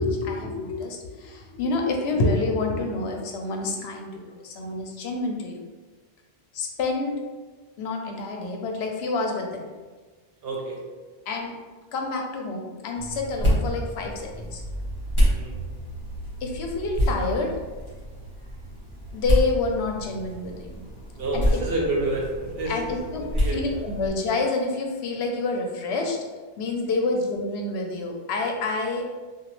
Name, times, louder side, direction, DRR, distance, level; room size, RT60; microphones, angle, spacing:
voice 1, 0.0-5.6 6.5-7.2 7.8-9.7 11.3-11.6 11.9-14.6 16.4-17.6 19.1-20.7 21.3-21.6 22.7-23.2 23.5-26.2 26.6-29.1, left 3 dB, 80° left, 1 dB, 0.8 m, -28 dB
voice 2, 10.4-10.8 15.3-15.6 21.2-23.9 26.8-27.0, right 2 dB, 70° right, -2 dB, 0.9 m, -29 dB
sound 1, 13.0-24.1, equal, 30° left, 1.3 m, -28 dB
2.9 x 2.3 x 3.0 m, 1.4 s
omnidirectional pair, 1.1 m